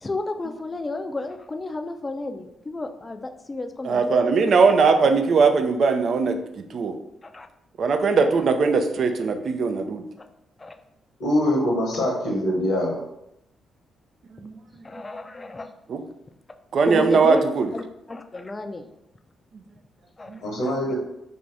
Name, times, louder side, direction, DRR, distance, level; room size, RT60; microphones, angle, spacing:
voice 1, 0.0-4.4 7.2-7.5 10.6-10.8 14.4-14.5 14.8-15.7 16.8-17.4 17.7-18.9 20.2-20.3, left 2 dB, 30° left, 7 dB, 0.4 m, -32 dB
voice 2, 3.8-6.4 6.7-7.0 7.8-10.0 14.3-14.6 15.9-16.0 16.7-17.7 20.3-20.4, right 4 dB, 60° right, 6 dB, 0.3 m, -20 dB
voice 3, 11.2-13.0 20.4-20.9, left 1 dB, 70° left, -2 dB, 0.9 m, -23 dB
2.6 x 2.5 x 3.2 m, 0.82 s
hypercardioid pair, 45°, 0 cm